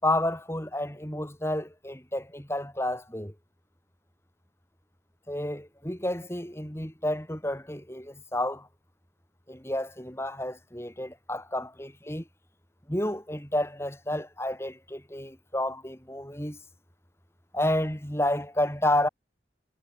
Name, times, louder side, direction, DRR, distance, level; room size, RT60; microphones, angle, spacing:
voice 1, 0.0-3.3 5.3-8.7 9.5-12.2 12.9-16.6 17.5-19.1, left 1 dB, 15° left, 5.6 m, -30 dB
head